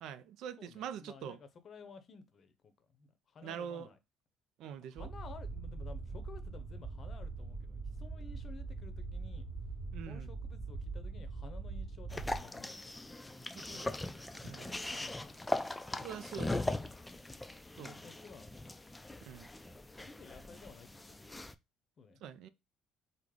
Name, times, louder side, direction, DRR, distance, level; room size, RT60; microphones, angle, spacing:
voice 1, 0.0-1.4 3.4-3.9 4.6-5.1 9.9-10.3 13.6-13.9 14.4-14.7 16.0-16.6 17.8-18.0 19.2-19.5 22.2-22.5, right 8 dB, 70° right, 0.3 m, -44 dB
voice 2, 0.6-4.0 4.8-9.5 10.0-12.9 13.6-14.0 14.5-15.4 15.9-16.8 17.8-18.5 20.0-21.4 22.0-22.2, left 5 dB, 45° left, 0.6 m, -54 dB
sound 1, 5.0-12.4, right 3 dB, 10° right, 1.1 m, -42 dB
sound 2, 12.1-21.5, left 2 dB, 10° left, 0.3 m, -40 dB
3.2 x 2.0 x 3.7 m
hypercardioid pair, 65°, 0 cm